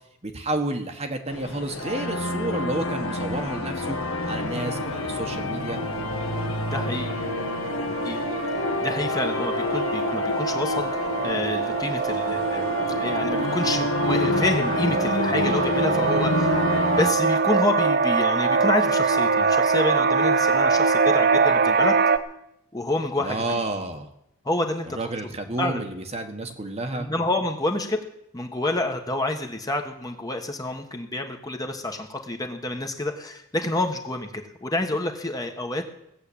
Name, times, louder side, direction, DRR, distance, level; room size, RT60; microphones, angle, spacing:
voice 1, 0.2-4.0 4.2-5.8 23.2-24.1 24.9-27.1, right 2 dB, 30° right, 5 dB, 1.4 m, -30 dB
sound 1, 1.3-17.1, left 1 dB, 70° left, 1.5 m, -28 dB
sound 2, 4.5-22.2, right 4 dB, 45° right, 0.7 m, -24 dB
voice 2, 6.7-7.2 8.0-8.2 8.8-12.7 13.0-16.6 17.0-22.0 22.7-23.6 24.4-25.1 25.6-25.8 27.0-28.0 28.3-35.8, left 2 dB, 15° left, 4 dB, 1.3 m, -28 dB
17.5 x 7.7 x 8.6 m, 0.80 s
head